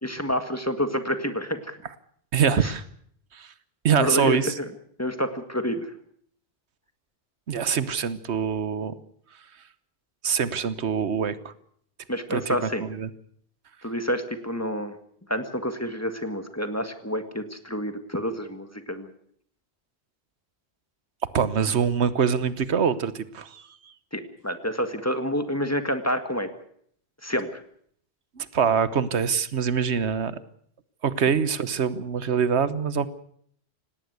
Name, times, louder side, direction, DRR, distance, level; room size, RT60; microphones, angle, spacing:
voice 1, 0.0-1.8 2.6-2.7 4.0-4.6 5.0-5.9 12.1-12.9 13.8-14.9 15.3-19.1 24.1-26.5 27.2-27.6, equal, 15° left, 8 dB, 1.8 m, -28 dB
voice 2, 2.3-2.8 3.3-3.5 3.8-4.5 7.5-8.9 10.2-11.5 12.3-13.1 21.3-23.6 28.4-30.4 31.0-33.1, right 7 dB, 90° right, 15 dB, 1.3 m, -24 dB
18.5 x 18.0 x 8.1 m, 0.63 s
omnidirectional pair, 1.1 m